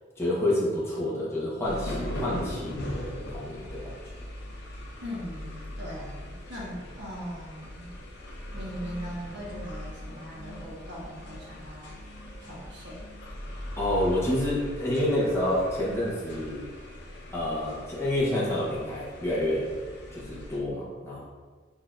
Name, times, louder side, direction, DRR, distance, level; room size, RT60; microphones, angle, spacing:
voice 1, 0.2-3.9 13.7-16.7 17.3-19.7 20.1-21.2, left 1 dB, 15° left, -7 dB, 1.1 m, -28 dB
sound 1, 1.6-20.6, left 1 dB, 65° left, 0.8 m, -40 dB
voice 2, 5.0-7.9 8.5-11.9 12.4-13.0, equal, 65° right, -5 dB, 1.3 m, -40 dB
sound 2, 8.3-13.6, equal, 45° right, 1.0 m, -51 dB
6.4 x 2.8 x 2.5 m, 1.4 s
head